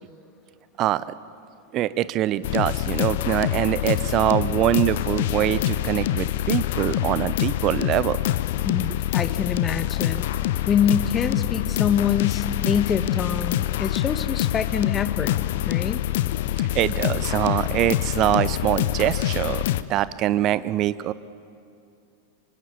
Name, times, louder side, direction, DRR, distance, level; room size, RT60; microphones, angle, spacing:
voice 1, 1.7-8.2 16.6-19.6 19.9-21.1, right 13 dB, 35° right, 17 dB, 0.8 m, -23 dB
sound 1, 2.4-19.8, left 14 dB, 55° left, 0.8 m, -25 dB
voice 2, 8.6-10.2 10.6-15.3 15.6-16.0, left 7 dB, 25° left, 11 dB, 1.4 m, -25 dB
26.0 x 25.5 x 8.4 m, 2.6 s
figure-of-eight pair, 90°, 0 cm